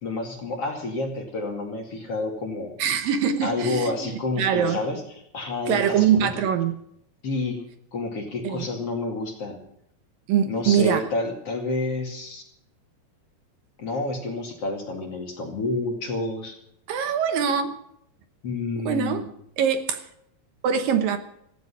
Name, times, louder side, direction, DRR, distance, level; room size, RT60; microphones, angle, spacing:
voice 1, 0.0-2.7 3.4-5.0 5.3-6.3 7.2-7.6 7.9-9.6 10.5-12.4 13.8-16.6 18.4-19.2, left 2 dB, 45° left, 2 dB, 2.9 m, -29 dB
voice 2, 2.8-4.1 4.4-4.8 5.7-6.8 8.4-8.7 10.3-11.0 16.9-17.8 18.9-19.3 19.6-20.1 20.6-21.2, right 8 dB, 70° right, 8 dB, 2.6 m, -23 dB
16.5 x 15.5 x 5.6 m, 0.71 s
omnidirectional pair, 4.5 m